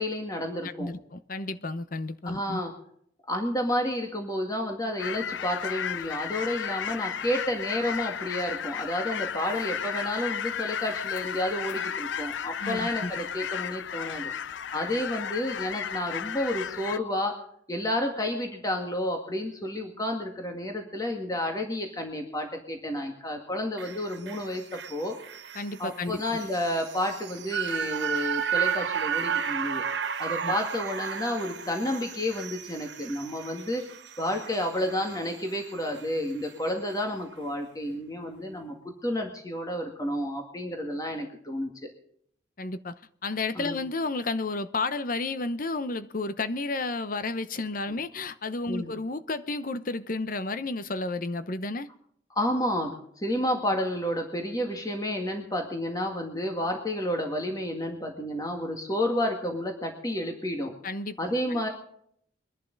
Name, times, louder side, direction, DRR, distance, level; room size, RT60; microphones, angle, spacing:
voice 1, 0.0-0.9 2.2-2.7 3.3-14.3 14.7-17.4 17.7-25.2 25.8-29.8 30.2-33.8 34.2-38.8 39.0-41.9 43.6-43.8 48.7-48.9 52.4-60.7 61.2-61.7, left 1 dB, 20° left, 1.9 m, -30 dB
voice 2, 0.8-2.6 12.6-13.1 25.5-26.2 30.4-30.6 42.6-51.9 60.8-61.6, left 3 dB, 50° left, 0.8 m, -32 dB
sound 1, 5.0-17.0, left 8 dB, 75° left, 0.5 m, -34 dB
sound 2, 23.8-36.1 36.5-36.6, right 7 dB, 70° right, 1.0 m, -33 dB
22.5 x 11.0 x 4.0 m
head